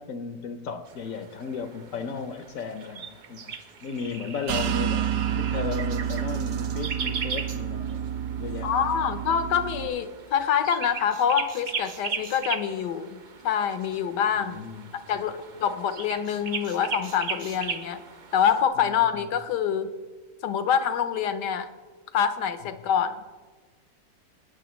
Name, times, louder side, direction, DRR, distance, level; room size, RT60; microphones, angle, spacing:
voice 1, 0.0-3.5 3.8-5.1 5.3-8.1 8.4-8.7 14.4-15.2, left 5 dB, 65° left, 8 dB, 0.9 m, -35 dB
sound 1, 0.9-18.6, right 5 dB, 70° right, 0.4 m, -38 dB
sound 2, 4.5-9.9, right 9 dB, 85° right, 1.3 m, -29 dB
voice 2, 8.6-14.6 15.1-18.0 18.3-19.9 20.4-21.7 22.1-23.2, left 8 dB, 80° left, 11 dB, 1.3 m, -26 dB
18.0 x 9.3 x 3.1 m, 1.4 s
omnidirectional pair, 1.8 m